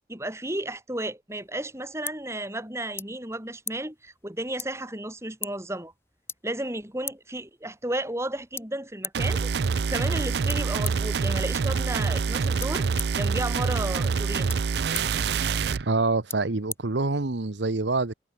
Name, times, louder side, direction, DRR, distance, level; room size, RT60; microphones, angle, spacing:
voice 1, 0.1-5.9 6.4-14.5, right 1 dB, 15° right, 7.5 m, -33 dB
sound 1, 1.3-17.6, left 5 dB, 15° left, 7.2 m, -43 dB
sound 2, 9.1-15.8, right 5 dB, 70° right, 0.5 m, -26 dB
voice 2, 15.8-18.1, right 3 dB, 85° right, 1.1 m, -26 dB
head